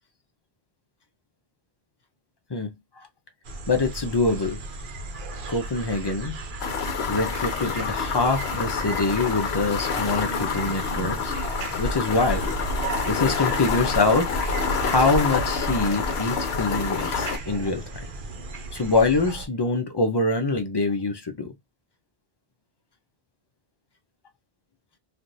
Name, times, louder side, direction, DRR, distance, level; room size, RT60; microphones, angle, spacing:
voice 1, 2.5-3.1 3.7-4.6 5.5-6.4 7.1-11.3 11.8-12.5 13.1-14.3 14.8-18.1 18.7-21.5, left 3 dB, 35° left, 0.4 m, -24 dB
sound 1, 3.4-19.5, right 2 dB, 50° right, 0.8 m, -36 dB
sound 2, 6.6-17.4, left 5 dB, 65° left, 1.0 m, -27 dB
3.2 x 2.5 x 2.6 m
omnidirectional pair, 1.2 m